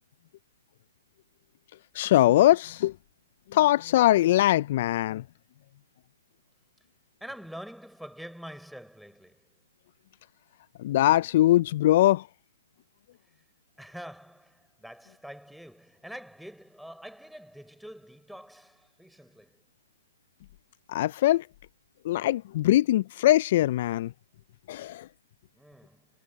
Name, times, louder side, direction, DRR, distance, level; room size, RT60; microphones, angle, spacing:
voice 1, 1.9-2.9 3.5-5.2 10.8-12.3 20.9-21.5 22.0-24.1 24.7-25.1, left 14 dB, 50° left, 0.3 m, -22 dB
voice 2, 7.2-9.4 13.8-19.6 25.5-26.1, equal, ahead, 5.9 m, -45 dB
hypercardioid pair, 140°, 0 cm